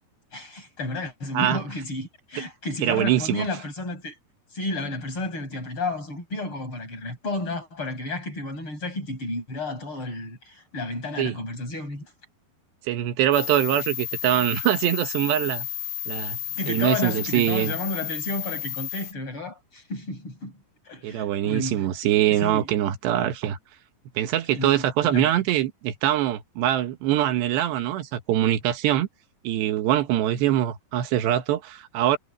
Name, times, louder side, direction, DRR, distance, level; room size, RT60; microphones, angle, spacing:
voice 1, 0.3-4.2 4.5-12.1 16.5-20.6 20.8-21.9 22.4-22.7 24.5-25.3, left 2 dB, 30° left, 8.5 m, -32 dB
voice 2, 2.8-3.5 11.2-11.3 12.8-15.7 16.1-16.4 16.7-17.7 21.0-23.6 24.2-29.1 29.5-32.2, right 12 dB, 85° right, 3.5 m, -23 dB
sound 1, 13.3-19.1, left 13 dB, 55° left, 3.0 m, -32 dB
omnidirectional pair, 4.8 m